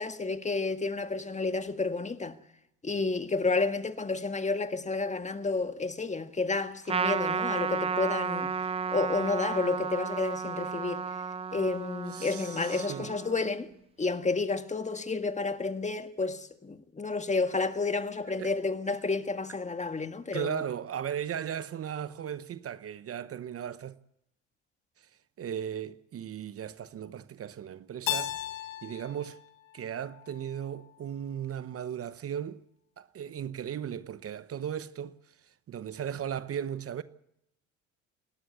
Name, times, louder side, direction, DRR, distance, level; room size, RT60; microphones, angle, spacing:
voice 1, 0.0-2.4 2.8-8.5 8.9-11.0 11.5-13.7 14.0-20.6, left 3 dB, 20° left, 1.7 m, -30 dB
Trumpet, 6.9-13.6, right 6 dB, 15° right, 0.7 m, -33 dB
voice 2, 12.1-13.1 18.3-18.5 20.3-24.0 25.0-25.1 25.4-28.3 28.8-29.4 29.7-32.6 33.0-35.1 35.4-37.0, right 9 dB, 40° right, 1.0 m, -36 dB
Keyboard (musical), 28.1-30.9, left 13 dB, 75° left, 1.8 m, -37 dB
28.0 x 12.5 x 8.2 m
hypercardioid pair, 70°, 35 cm